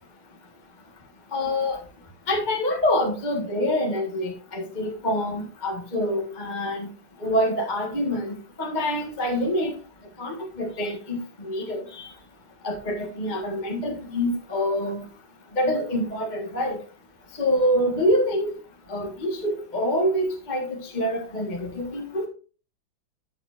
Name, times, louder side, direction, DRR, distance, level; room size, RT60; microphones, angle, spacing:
voice 1, 1.3-1.8 2.3-6.9 7.2-9.7 10.2-12.1 12.6-15.0 15.6-16.8 17.4-18.5 18.9-22.3, equal, 25° left, 1 dB, 1.6 m, -26 dB
13.0 x 7.3 x 2.6 m, 0.36 s
omnidirectional pair, 2.3 m